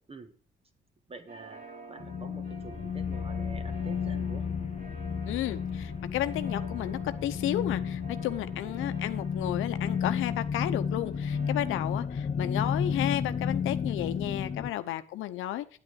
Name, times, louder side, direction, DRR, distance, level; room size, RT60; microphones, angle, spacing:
voice 1, 1.1-4.5 8.5-8.7 14.6-14.8, right 3 dB, 30° right, 9 dB, 1.7 m, -47 dB
sound 1, 1.3-11.8, right 4 dB, 45° right, 3.5 m, -49 dB
sound 2, 2.0-14.7, left 6 dB, 35° left, 0.7 m, -32 dB
voice 2, 5.3-15.8, left 13 dB, 90° left, 11 dB, 0.8 m, -33 dB
9.6 x 8.9 x 4.7 m, 0.43 s
cardioid pair, 90°, 20 cm